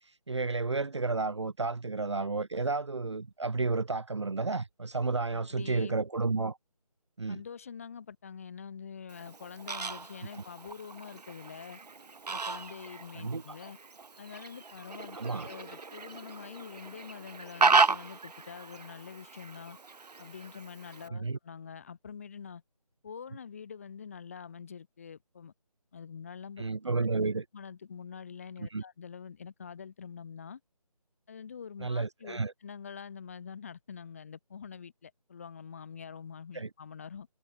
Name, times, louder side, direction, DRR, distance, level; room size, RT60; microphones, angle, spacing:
voice 1, 0.3-6.6 7.2-7.4 13.1-13.6 15.1-15.5 21.1-21.4 26.6-27.4 28.7-28.8 31.8-32.5 36.5-36.7, right 3 dB, 45° right, 1.6 m, -31 dB
voice 2, 5.3-5.9 7.3-11.8 12.3-13.8 14.2-19.8 20.2-22.6 23.0-25.5 25.9-26.6 27.0-27.1 27.5-30.6 31.3-37.3, left 6 dB, 20° left, 6.6 m, -45 dB
Fowl, 9.1-21.1, right 4 dB, 85° right, 1.0 m, -33 dB
figure-of-eight pair, 175°, 20 cm